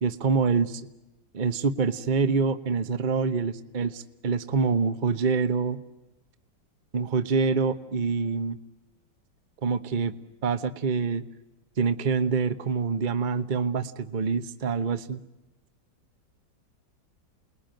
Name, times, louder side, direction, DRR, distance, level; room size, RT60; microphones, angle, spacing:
voice 1, 0.0-0.8 1.3-5.8 6.9-8.6 9.6-10.1 10.4-11.2 11.8-15.2, right 5 dB, 35° right, 11 dB, 1.0 m, -26 dB
29.5 x 21.0 x 9.1 m, 0.98 s
omnidirectional pair, 2.0 m